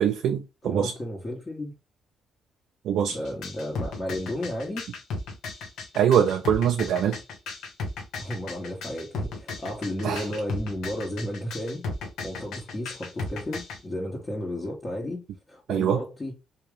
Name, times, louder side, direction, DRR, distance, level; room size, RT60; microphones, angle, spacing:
voice 1, 0.0-0.9 2.8-3.2 5.9-7.2 10.0-10.2 15.7-16.0, right 9 dB, 80° right, 0.5 m, -23 dB
voice 2, 0.6-1.7 3.1-4.9 8.2-11.8 12.2-16.3, left 1 dB, 25° left, 1.4 m, -33 dB
sound 1, 3.1-13.8, left 3 dB, 85° left, 1.1 m, -35 dB
3.6 x 2.9 x 3.1 m
cardioid pair, 90°, 0 cm